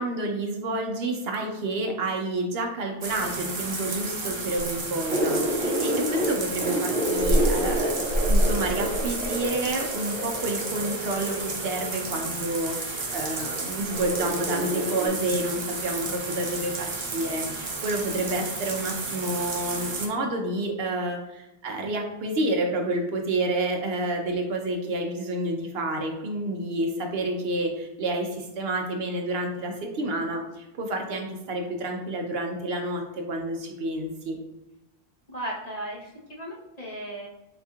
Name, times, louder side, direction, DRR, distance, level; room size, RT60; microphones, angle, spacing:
voice 1, 0.0-34.4, right 2 dB, 65° right, 2 dB, 0.8 m, -29 dB
sound 1, 3.0-20.1, right 2 dB, 35° right, 0.5 m, -30 dB
sound 2, 5.1-6.2 6.5-12.0 13.1-13.6 13.9-15.1, equal, 10° right, 1.4 m, -29 dB
voice 2, 35.3-37.3, right 1 dB, 40° left, -4 dB, 1.0 m, -36 dB
4.3 x 4.2 x 2.3 m, 0.93 s
omnidirectional pair, 1.1 m